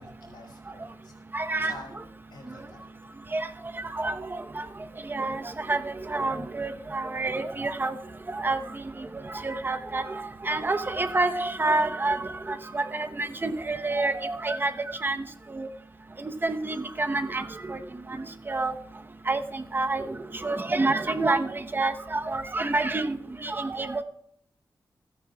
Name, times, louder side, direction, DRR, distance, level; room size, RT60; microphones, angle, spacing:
voice 1, 0.0-1.2 1.6-2.0 2.3-3.1, left 2 dB, 80° left, 0 dB, 4.9 m, -48 dB
voice 2, 1.3-1.8 3.3-3.5 3.9-4.6 5.1-7.9 8.3-8.8 9.3-14.7 15.0-15.2 15.5-15.7 16.2-17.8 18.1-18.7 19.3-20.2 20.4-24.0, right 2 dB, 25° right, 7 dB, 0.9 m, -28 dB
29.0 x 9.7 x 2.3 m, 0.70 s
wide cardioid pair, 115°, 8 cm